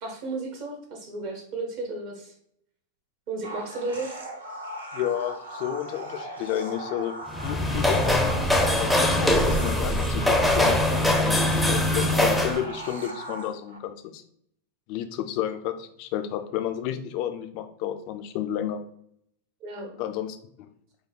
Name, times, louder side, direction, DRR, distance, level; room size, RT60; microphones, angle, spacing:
voice 1, 0.0-2.3 3.3-4.1 19.6-19.9, right 3 dB, 45° right, 2 dB, 1.1 m, -33 dB
sound 1, 3.4-13.8, right 1 dB, 70° right, 0.7 m, -38 dB
voice 2, 4.9-7.2 7.4-8.2 8.6-14.2 14.9-18.8 20.0-20.7, left 11 dB, 45° left, 8 dB, 0.4 m, -31 dB
sound 2, 7.3-12.6, left 1 dB, 5° right, 0.6 m, -22 dB
4.9 x 2.2 x 3.7 m, 0.69 s
figure-of-eight pair, 90°, 0 cm